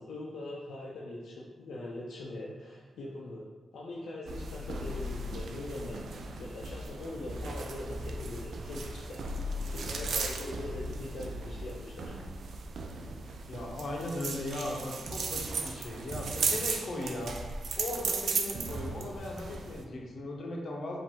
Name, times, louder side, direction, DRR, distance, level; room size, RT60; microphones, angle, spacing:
voice 1, 0.0-3.4 3.7-6.0 6.4-9.3 9.7-12.2, left 1 dB, 80° left, -5 dB, 0.5 m, -41 dB
sound 1, 4.3-19.8, right 3 dB, 75° right, 0.4 m, -36 dB
voice 2, 13.5-17.4 17.8-21.0, left 2 dB, 65° left, -1 dB, 0.9 m, -38 dB
4.9 x 2.6 x 3.6 m, 1.3 s
cardioid pair, 75°, 0 cm